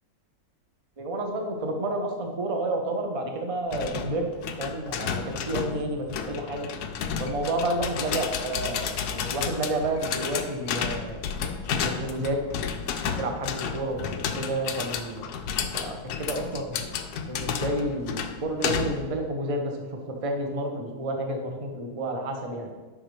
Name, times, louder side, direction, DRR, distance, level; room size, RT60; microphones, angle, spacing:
voice 1, 1.0-4.3 4.6-6.7 7.2-11.2 11.8-12.4 13.2-15.3 15.7-16.8 17.3-22.7, right 1 dB, 30° right, 3 dB, 0.7 m, -30 dB
sound 1, 3.7-19.1, left 7 dB, 90° left, 1.2 m, -32 dB
11.0 x 5.2 x 3.2 m, 1.3 s
omnidirectional pair, 1.6 m